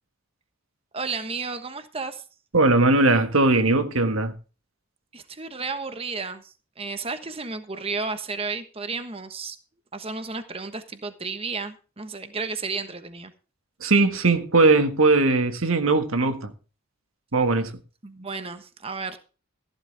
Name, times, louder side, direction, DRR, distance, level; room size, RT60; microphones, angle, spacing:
voice 1, 0.9-2.2 5.1-9.6 9.9-13.3 18.0-19.2, right 4 dB, 30° right, 1.2 m, -33 dB
voice 2, 2.5-4.3 13.8-16.5 17.3-17.7, right 3 dB, 85° right, 1.6 m, -19 dB
14.5 x 11.5 x 3.4 m
head